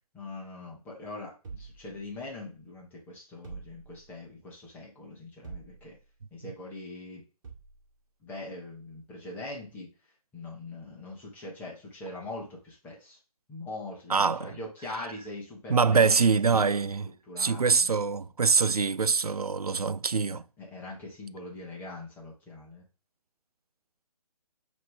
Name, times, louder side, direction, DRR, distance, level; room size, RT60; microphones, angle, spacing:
voice 1, 0.1-6.0 6.3-7.2 8.2-9.9 10.3-13.2 13.5-16.6 17.3-18.0 20.3-22.8, left 2 dB, 10° left, 1.4 m, -42 dB
sound 1, 1.4-2.6 3.4-4.3 5.4-6.1 7.4-7.9, right 5 dB, 30° right, 2.1 m, -46 dB
voice 2, 14.1-14.6 15.7-20.4, right 5 dB, 75° right, 0.5 m, -24 dB
9.2 x 3.2 x 3.5 m
figure-of-eight pair, 140°, 19 cm